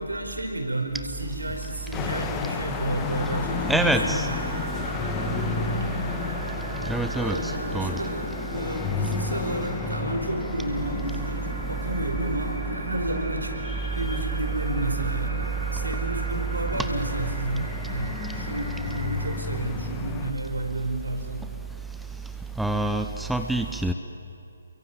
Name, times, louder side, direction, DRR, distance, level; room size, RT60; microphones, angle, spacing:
voice 1, 0.0-4.2 5.2-5.7 7.1-13.6 13.9-21.4, right 1 dB, 75° right, 4 dB, 5.0 m, -31 dB
sound 1, 1.5-19.4, right 2 dB, 45° right, 5.9 m, -39 dB
sound 2, 1.9-20.3, left 5 dB, 15° left, 1.5 m, -33 dB
voice 2, 3.7-4.3 6.9-7.9 22.6-23.9, right 1 dB, ahead, 6 dB, 0.8 m, -26 dB
29.0 x 23.0 x 9.0 m, 2.6 s
figure-of-eight pair, 140°, 0 cm